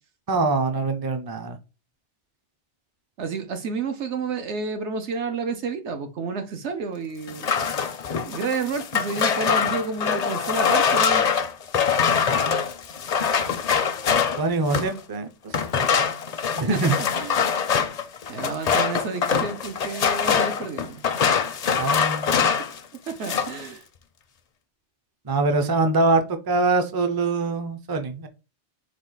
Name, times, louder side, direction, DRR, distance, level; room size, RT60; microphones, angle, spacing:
voice 1, 0.3-1.6 14.4-15.5 16.6-17.0 21.8-22.4 25.3-28.3, right 3 dB, 30° right, 0.4 m, -23 dB
voice 2, 3.2-7.5 8.3-11.3 16.7-17.4 18.3-21.1 23.1-23.8, right 4 dB, 80° right, 1.1 m, -30 dB
sound 1, 7.3-15.0 15.5-22.8 23.1-23.6, left 6 dB, 50° left, 0.5 m, -23 dB
4.9 x 2.4 x 3.8 m
omnidirectional pair, 1.2 m